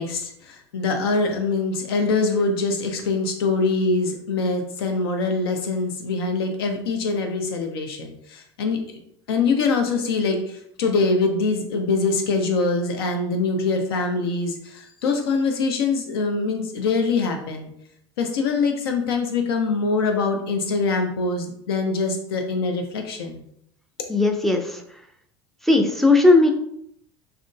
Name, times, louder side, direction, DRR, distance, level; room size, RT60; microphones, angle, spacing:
voice 1, 0.0-9.0 9.3-17.7 18.2-23.4, left 3 dB, 65° left, 4 dB, 0.6 m, -24 dB
voice 2, 24.1-24.8 25.6-26.5, left 2 dB, ahead, 3 dB, 0.4 m, -17 dB
3.6 x 2.7 x 2.2 m, 0.71 s
figure-of-eight pair, 70°, 14 cm